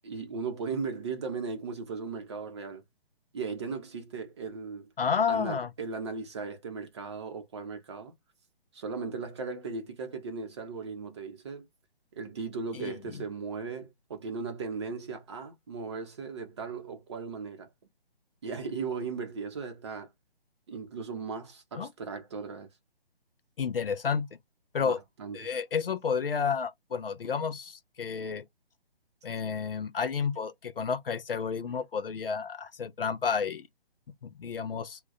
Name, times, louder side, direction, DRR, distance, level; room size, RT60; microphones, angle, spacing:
voice 1, 0.0-2.8 3.3-4.9 5.3-8.1 8.7-11.7 12.1-17.7 18.4-20.1 20.7-22.7 24.7-25.5, right 4 dB, 30° right, 0.7 m, -37 dB
voice 2, 5.0-5.7 12.7-12.9 21.7-21.9 23.6-24.3 24.7-25.0 25.3-28.4 29.2-33.7 34.2-35.0, left 6 dB, 65° left, 0.6 m, -31 dB
2.3 x 2.2 x 3.9 m
figure-of-eight pair, 140°, 31 cm